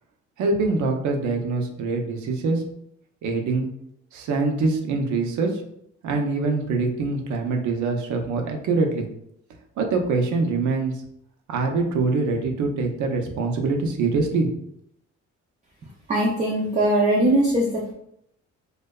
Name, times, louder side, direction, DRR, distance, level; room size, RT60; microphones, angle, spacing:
voice 1, 0.4-2.6 3.2-3.7 4.1-5.6 6.0-9.1 9.8-10.9 11.5-14.5, right 3 dB, 75° right, 3 dB, 0.5 m, -24 dB
voice 2, 16.1-17.9, right 1 dB, 25° right, -3 dB, 0.4 m, -21 dB
2.6 x 2.1 x 2.2 m, 0.74 s
cardioid pair, 90°, 30 cm